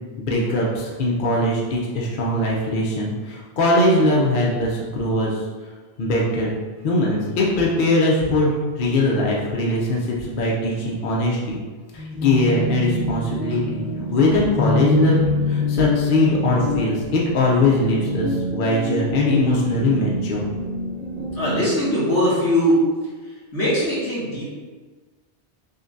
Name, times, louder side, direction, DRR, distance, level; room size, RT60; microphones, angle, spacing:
voice 1, 0.2-5.4 6.0-6.5 6.8-11.6 11.9-13.9 14.1-20.5, left 1 dB, 55° left, -4 dB, 0.7 m, -21 dB
sound 1, 12.0-21.9, left 3 dB, 5° right, 1.1 m, -26 dB
voice 2, 21.4-22.8 23.5-24.4, equal, 75° left, -9 dB, 2.1 m, -20 dB
6.2 x 2.2 x 2.6 m, 1.4 s
omnidirectional pair, 1.2 m